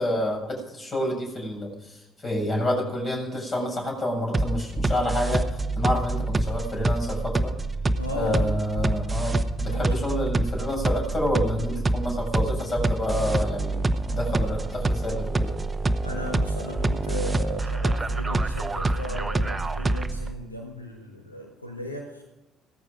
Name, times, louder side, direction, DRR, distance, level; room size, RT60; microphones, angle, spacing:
voice 1, 0.0-2.0 2.2-5.4 5.8-7.5 8.1-13.8 14.1-15.5, left 1 dB, 35° left, 1 dB, 7.4 m, -28 dB
sound 1, 4.3-20.3, right 2 dB, 20° right, 1.0 m, -26 dB
voice 2, 8.0-8.6 9.7-9.9 16.0-22.2, left 1 dB, 90° left, 1 dB, 1.5 m, -36 dB
17.5 x 14.5 x 5.1 m, 1.1 s
figure-of-eight pair, 50°, 0 cm